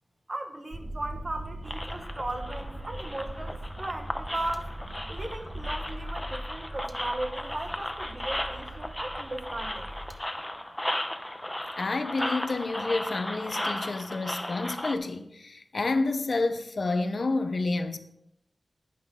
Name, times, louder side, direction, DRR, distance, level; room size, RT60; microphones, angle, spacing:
voice 1, 0.3-4.8 5.1-9.9, right 1 dB, 40° right, 1.4 m, -36 dB
sound 1, 0.7-10.1, right 1 dB, 20° right, 1.2 m, -40 dB
sound 2, 1.6-15.0, left 1 dB, 10° left, 0.8 m, -36 dB
voice 2, 11.8-18.0, left 3 dB, 65° left, 0.8 m, -29 dB
11.0 x 10.0 x 3.7 m
wide cardioid pair, 90°, 0 cm